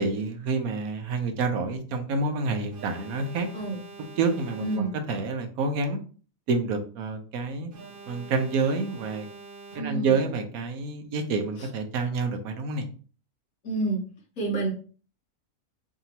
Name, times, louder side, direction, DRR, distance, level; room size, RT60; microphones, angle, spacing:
voice 1, 0.0-3.5 4.2-6.0 6.5-7.7 8.1-9.3 9.7-12.9, right 4 dB, 75° right, 6 dB, 1.1 m, -28 dB
Alarm, 2.7-5.3 7.7-10.3, right 3 dB, 55° right, 0.6 m, -46 dB
voice 2, 4.6-4.9 9.8-10.1 13.6-14.0 14.4-14.7, right 2 dB, 70° left, -2 dB, 1.8 m, -28 dB
4.9 x 2.7 x 2.8 m, 0.39 s
omnidirectional pair, 1.6 m